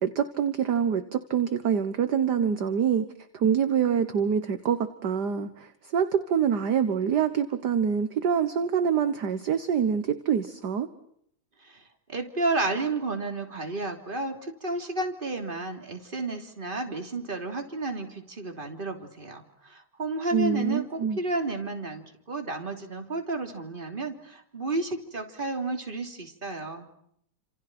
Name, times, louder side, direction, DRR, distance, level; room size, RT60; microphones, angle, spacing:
voice 1, 0.0-3.1 3.3-10.9 20.3-21.2, right 7 dB, 55° right, 10 dB, 1.7 m, -25 dB
voice 2, 11.6-26.9, right 2 dB, 25° right, 5 dB, 3.2 m, -32 dB
29.5 x 27.5 x 6.1 m, 0.70 s
omnidirectional pair, 2.4 m